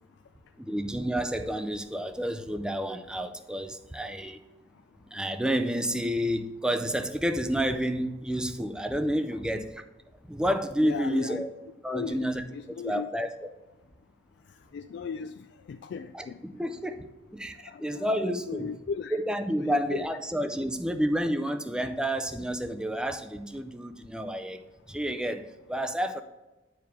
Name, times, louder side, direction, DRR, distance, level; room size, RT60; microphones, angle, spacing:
voice 1, 0.6-4.4 5.1-9.8 10.2-11.5 11.8-13.5 16.1-16.2 16.5-18.8 19.1-24.6 24.9-26.2, equal, 5° right, 7 dB, 0.4 m, -30 dB
voice 2, 10.8-11.5 11.9-13.1 14.7-16.4 17.7-18.1 18.5-19.2 19.6-20.1, left 6 dB, 65° left, 9 dB, 0.3 m, -37 dB
9.7 x 4.8 x 3.5 m, 1.1 s
head